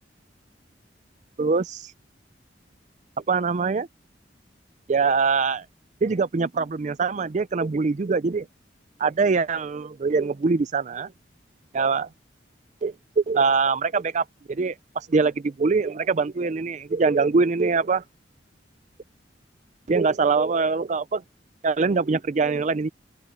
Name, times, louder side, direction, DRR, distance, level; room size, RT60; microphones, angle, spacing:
voice 1, 1.4-1.9 3.3-3.9 4.9-5.7 6.0-8.5 9.0-11.1 11.7-12.1 12.8-18.0 19.9-21.2 21.6-22.9, right 4 dB, 40° right, 0.4 m, -23 dB
open air
head